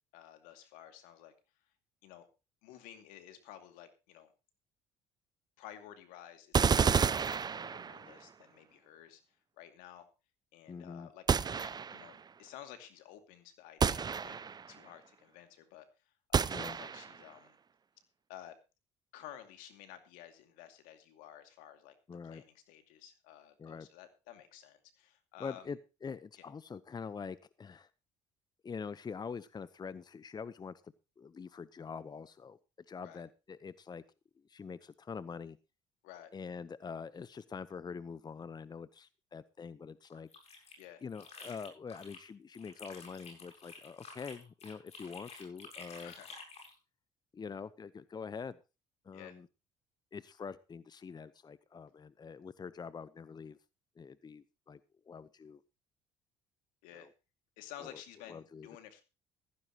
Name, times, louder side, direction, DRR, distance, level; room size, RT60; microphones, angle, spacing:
voice 1, 0.1-1.3 2.0-2.2 2.6-4.3 5.6-9.2 9.6-10.1 10.5-15.9 16.3-17.6 18.3-18.6 19.1-21.9 22.2-25.7 26.4-26.5 33.0-33.2 36.0-36.3 40.8-41.0 46.0-46.3 49.1-49.4 56.8-57.1 57.6-59.0, left 11 dB, 80° left, 8 dB, 2.5 m, -53 dB
sound 1, 6.5-8.2 11.3-12.2 13.8-14.7 16.3-17.2, right 6 dB, 30° right, 0.6 m, -30 dB
voice 2, 10.7-11.1 16.5-16.8 22.1-22.4 23.6-23.9 25.4-27.9 28.6-32.6 32.9-34.0 34.5-35.6 36.3-40.7 41.0-46.1 47.3-48.6 49.0-49.5 50.1-53.6 54.0-54.8 55.1-55.6 56.9-57.1 57.8-58.0 58.3-58.7, left 5 dB, 30° left, 17 dB, 0.9 m, -45 dB
sound 2, 40.1-42.3 42.5-46.7, left 4 dB, 50° left, 7.7 m, -51 dB
15.0 x 15.0 x 3.0 m, 0.29 s
supercardioid pair, 70°, 14 cm